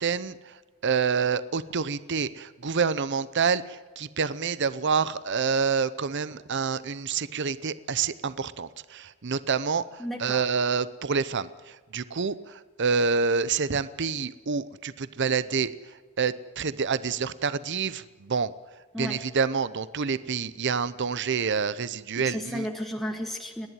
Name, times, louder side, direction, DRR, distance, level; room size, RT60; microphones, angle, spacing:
voice 1, 0.0-18.5 19.0-22.7, right 5 dB, 55° right, 16 dB, 0.7 m, -28 dB
voice 2, 10.0-10.4 18.9-19.2 22.2-23.7, equal, ahead, 1 dB, 1.5 m, -33 dB
29.5 x 11.0 x 9.1 m, 1.3 s
head